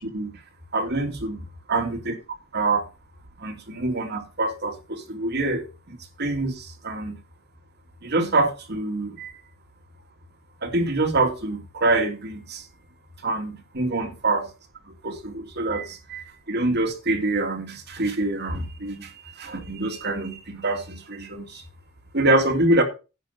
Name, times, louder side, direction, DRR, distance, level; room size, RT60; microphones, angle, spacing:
voice 1, 0.7-2.1 2.5-2.8 3.4-7.2 8.0-9.3 10.6-12.6 13.2-14.5 14.9-21.6 22.1-22.8, right 2 dB, 55° right, 2.9 m, -26 dB
11.0 x 7.2 x 5.4 m
head